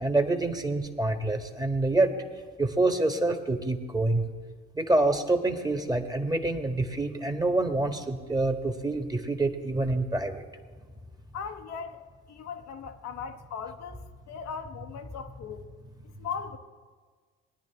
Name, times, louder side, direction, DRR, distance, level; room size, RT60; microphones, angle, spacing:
voice 1, 0.0-2.1 2.6-4.2 4.7-10.4, right 2 dB, 10° right, 5 dB, 1.4 m, -26 dB
voice 2, 11.3-15.7 16.0-16.6, left 6 dB, 60° left, 5 dB, 1.0 m, -39 dB
19.5 x 10.5 x 3.5 m, 1.5 s
hypercardioid pair, 60°, 31 cm